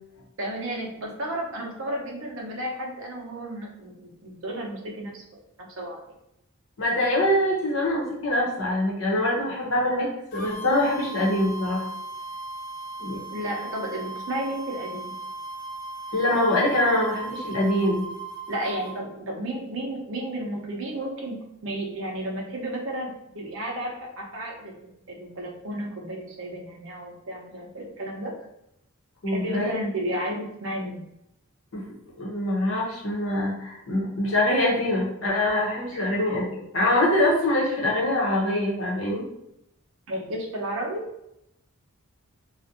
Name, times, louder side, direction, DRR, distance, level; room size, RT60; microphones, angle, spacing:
voice 1, 0.4-5.2 5.8-6.0 13.3-15.1 18.5-24.7 25.1-28.3 29.3-31.0 35.9-36.1 40.1-41.0, right 1 dB, 60° right, 0 dB, 0.6 m, -32 dB
voice 2, 6.8-11.9 13.0-13.2 16.1-18.0 29.2-29.7 31.7-31.8 32.2-39.2, left 1 dB, 60° left, -3 dB, 0.7 m, -24 dB
sound 1, 10.3-18.9, right 3 dB, 35° left, 0.4 m, -37 dB
2.4 x 2.1 x 2.7 m, 0.82 s
head